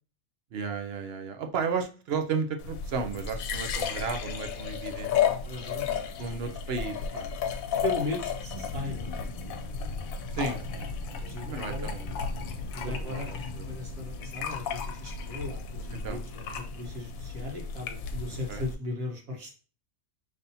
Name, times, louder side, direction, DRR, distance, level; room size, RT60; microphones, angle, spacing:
voice 1, 0.5-5.1 6.2-7.3 10.3-12.1 12.8-13.8 15.9-16.2 18.5-18.7, right 5 dB, 60° right, 6 dB, 0.7 m, -34 dB
sound 1, 2.6-18.7, left 6 dB, 85° left, 1.1 m, -34 dB
voice 2, 5.4-5.9 7.1-7.2 7.8-9.3 11.2-12.0 12.7-13.3 13.7-19.5, left 2 dB, 80° right, -1 dB, 1.6 m, -37 dB
sound 2, 8.1-17.6, left 3 dB, 60° left, 0.3 m, -43 dB
5.4 x 3.4 x 2.7 m, 0.37 s
omnidirectional pair, 1.4 m